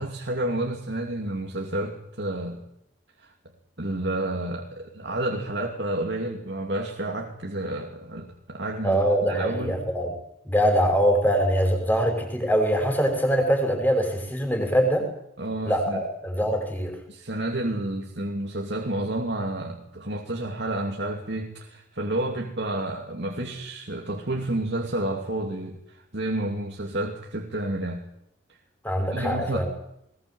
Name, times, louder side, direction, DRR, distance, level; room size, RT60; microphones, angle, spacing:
voice 1, 0.0-2.6 3.2-3.3 3.8-9.8 15.4-16.0 17.1-28.0 29.1-29.7, right 1 dB, 60° right, 0 dB, 2.7 m, -30 dB
voice 2, 8.8-10.1 10.5-15.1 15.6-17.0 28.8-29.7, equal, 10° left, 4 dB, 5.7 m, -23 dB
20.5 x 20.5 x 7.8 m, 0.76 s
head